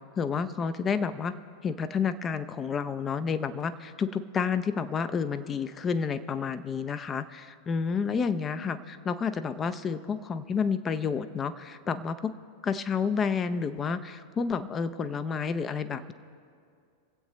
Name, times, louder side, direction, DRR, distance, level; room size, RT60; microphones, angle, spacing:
voice 1, 0.2-1.3 1.6-12.3 12.6-16.1, left 6 dB, 25° left, 11 dB, 0.5 m, -30 dB
24.5 x 8.1 x 3.1 m, 2.3 s
figure-of-eight pair, 90°, 0 cm